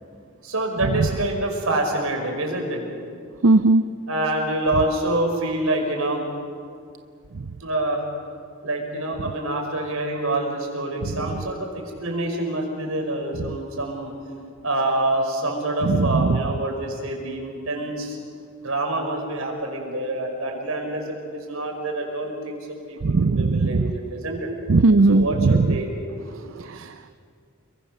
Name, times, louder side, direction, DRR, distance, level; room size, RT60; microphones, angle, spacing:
voice 1, 0.4-2.9 4.1-6.2 7.6-8.0 8.6-14.1 14.6-18.2 18.6-24.5 25.1-25.9 26.7-26.9, right 1 dB, 85° right, 2 dB, 5.4 m, -26 dB
voice 2, 3.4-3.8 7.3-7.6 11.0-11.4 15.8-16.4 23.0-23.9 24.7-25.8 26.3-27.2, right 3 dB, 65° right, 10 dB, 0.6 m, -19 dB
28.5 x 22.5 x 6.8 m, 2.3 s
head